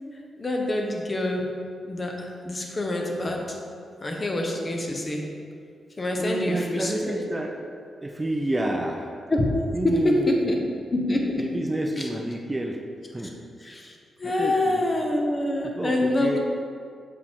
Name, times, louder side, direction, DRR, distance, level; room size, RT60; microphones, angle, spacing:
voice 1, 0.4-1.4 1.9-3.6 4.0-5.2 6.0-7.2 9.3-9.5 9.8-10.6 10.9-11.4 12.0-12.1 13.2-13.3 13.6-16.4, left 1 dB, 30° left, 1 dB, 0.9 m, -26 dB
voice 2, 6.2-7.6 8.0-9.1 9.7-10.3 11.4-12.8 13.1-13.4 14.2-14.8 15.6-16.4, right 1 dB, 15° right, 1 dB, 0.5 m, -29 dB
6.5 x 4.7 x 3.6 m, 2.3 s
cardioid pair, 95°, 0 cm